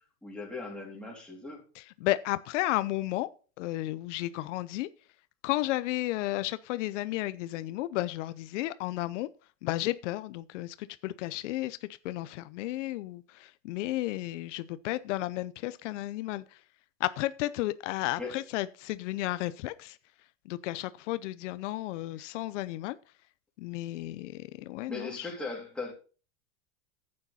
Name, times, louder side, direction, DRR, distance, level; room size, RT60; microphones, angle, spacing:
voice 1, 0.2-1.6 18.2-18.4 22.2-22.3 24.9-25.9, left 3 dB, 5° left, 3.4 m, -38 dB
voice 2, 1.8-3.3 3.6-4.9 5.4-9.3 9.6-11.8 12.0-16.4 17.0-20.0 20.5-23.0 23.6-25.3, left 17 dB, 75° left, 0.7 m, -33 dB
10.5 x 8.8 x 4.2 m
supercardioid pair, 150°, 36 cm